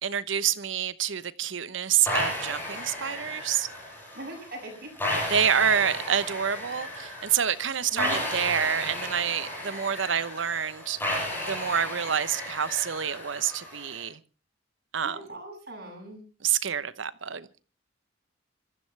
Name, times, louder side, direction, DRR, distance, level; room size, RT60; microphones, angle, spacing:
voice 1, 0.0-3.7 5.3-11.0 11.5-14.2 14.9-15.2 16.4-17.5, right 8 dB, 70° right, 0.9 m, -27 dB
sound 1, 2.1-14.0, left 1 dB, 10° left, 5.8 m, -34 dB
voice 2, 4.1-4.9 7.9-8.3 15.0-16.2, right 1 dB, 55° right, 7.1 m, -40 dB
26.5 x 14.5 x 3.3 m
head